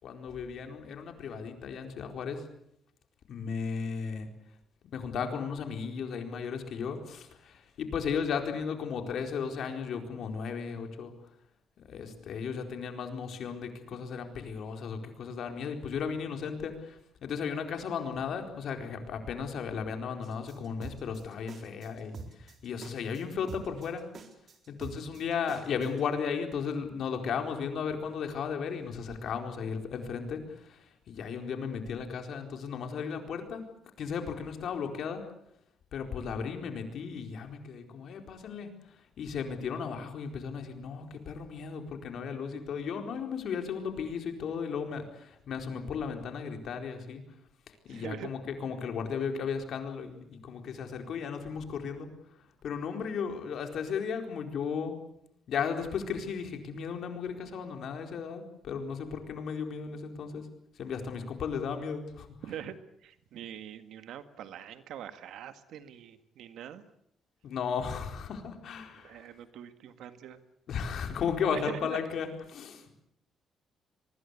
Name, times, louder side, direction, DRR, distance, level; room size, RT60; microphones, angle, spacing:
voice 1, 0.0-2.4 3.3-4.3 4.9-11.1 11.9-24.0 24.7-30.8 31.1-33.6 34.0-35.2 35.9-38.7 39.2-47.2 47.8-52.1 52.6-55.0 55.5-60.4 60.8-62.3 67.4-69.2 70.7-72.8, left 6 dB, 70° left, 5 dB, 4.3 m, -35 dB
sound 1, 20.2-26.0, right 4 dB, 50° right, 4.2 m, -46 dB
voice 2, 47.9-48.3 62.4-62.8 63.0-66.8 68.4-68.5 69.0-70.4 71.4-72.0, right 10 dB, 80° right, 10 dB, 1.8 m, -43 dB
23.5 x 20.5 x 8.4 m, 0.76 s
cardioid pair, 90°, 0 cm